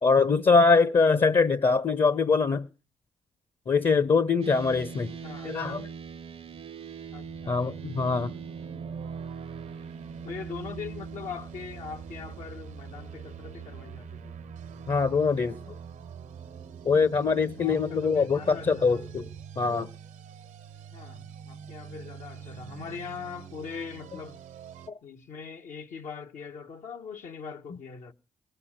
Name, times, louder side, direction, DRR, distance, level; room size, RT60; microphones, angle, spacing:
voice 1, 0.0-2.7 3.7-5.1 5.4-5.9 7.5-8.3 14.9-15.6 16.8-19.3 19.6-19.9, left 4 dB, 45° left, 0.8 m, -23 dB
sound 1, 4.4-19.5, right 6 dB, 45° right, 0.6 m, -43 dB
voice 2, 5.2-5.7 7.1-7.6 10.2-14.3 17.6-19.0 20.9-24.4 25.0-28.1, left 6 dB, 70° left, 1.1 m, -41 dB
sound 2, 7.1-24.9, right 8 dB, 85° right, 1.1 m, -46 dB
19.0 x 6.9 x 8.7 m
supercardioid pair, 60°, 13 cm